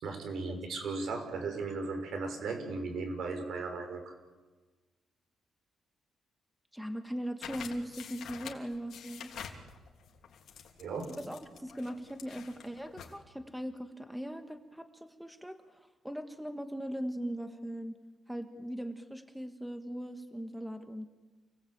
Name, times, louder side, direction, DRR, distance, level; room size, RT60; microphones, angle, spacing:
voice 1, 0.0-4.1 10.8-11.1, right 4 dB, 75° right, 5 dB, 6.2 m, -36 dB
voice 2, 6.7-9.3 11.2-18.0 18.3-21.1, equal, ahead, 7 dB, 1.5 m, -40 dB
sound 1, 7.4-13.2, left 7 dB, 70° left, 3.4 m, -48 dB
29.0 x 19.0 x 8.8 m, 1.3 s
cardioid pair, 145°, 0 cm